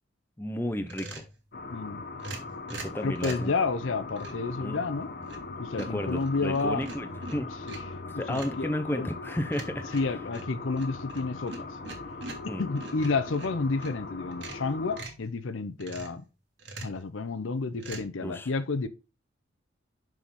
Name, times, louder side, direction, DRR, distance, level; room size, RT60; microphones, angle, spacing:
voice 1, 0.4-1.3 2.7-3.5 4.6-4.8 5.8-7.5 8.2-10.0 12.5-12.6 18.2-18.5, left 1 dB, 10° left, 0.6 m, -33 dB
sound 1, 0.9-1.4 2.2-3.5 4.2-4.5 5.0-5.5 5.8-8.0 8.3-8.6 9.5-14.0 14.3-15.2 15.8-16.2 16.6-17.0 17.8-18.0, right 3 dB, 65° right, 1.8 m, -43 dB
sound 2, 1.5-15.0, left 3 dB, 50° left, 0.7 m, -40 dB
voice 2, 1.7-2.0 3.0-5.1 5.6-6.8 7.7-7.8 8.1-9.1 9.9-11.7 12.6-16.2 16.8-18.9, left 3 dB, 80° left, 0.7 m, -30 dB
6.2 x 5.8 x 3.6 m
head